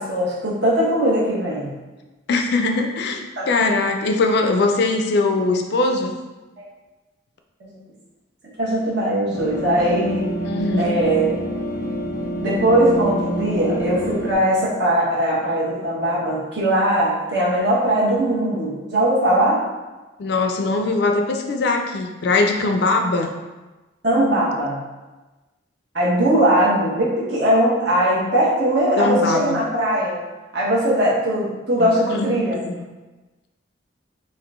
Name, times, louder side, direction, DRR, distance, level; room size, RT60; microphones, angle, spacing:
voice 1, 0.0-1.7 3.4-3.5 7.6-7.7 8.6-10.2 10.8-11.3 12.4-19.6 24.0-24.8 25.9-30.2 30.5-32.6, right 1 dB, 60° right, -6 dB, 1.1 m, -20 dB
voice 2, 2.3-6.1 10.4-11.0 20.2-23.3 29.0-29.6 31.8-32.3 32.7-32.8, left 3 dB, 55° left, 4 dB, 0.4 m, -21 dB
sound 1, 9.3-14.3, right 1 dB, 90° right, 1.0 m, -27 dB
3.7 x 2.5 x 3.5 m, 1.2 s
head